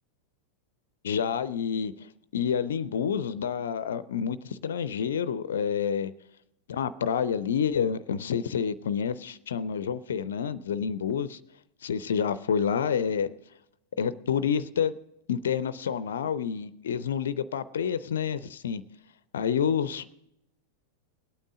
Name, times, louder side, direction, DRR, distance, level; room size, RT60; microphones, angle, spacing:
voice 1, 1.0-6.1 6.7-11.4 11.8-13.3 14.0-14.9 15.3-18.8 19.3-20.0, left 7 dB, 65° left, 17 dB, 0.5 m, -28 dB
19.5 x 8.9 x 3.7 m, 0.82 s
figure-of-eight pair, 90°, 0 cm